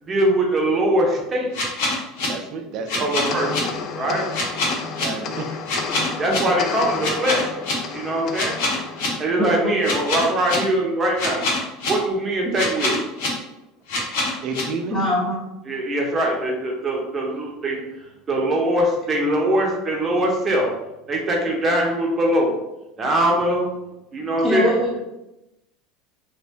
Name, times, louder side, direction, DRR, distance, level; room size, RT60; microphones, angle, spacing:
voice 1, 0.0-1.5 3.0-3.7 3.9-4.3 6.2-7.6 7.9-8.6 9.2-11.5 11.9-13.0 15.7-17.8 18.3-20.7 21.1-22.5 23.0-23.7 24.1-24.7, right 1 dB, 25° right, -1 dB, 0.9 m, -22 dB
sound 1, 1.5-2.3 2.9-3.6 4.3-5.0 5.7-6.4 7.0-7.7 8.3-9.1 9.8-10.6 11.2-11.9 12.5-13.3 13.9-14.6, left 3 dB, 80° left, 1.1 m, -24 dB
voice 2, 2.3-3.1 4.8-5.6 14.4-15.0, right 3 dB, 50° right, 4 dB, 0.5 m, -31 dB
sound 2, 3.3-9.9, left 5 dB, 50° left, 0.3 m, -32 dB
voice 3, 9.4-9.8 14.9-15.4 24.4-25.0, equal, 5° left, -8 dB, 1.2 m, -22 dB
2.6 x 2.6 x 3.4 m, 0.93 s
supercardioid pair, 115°, 0 cm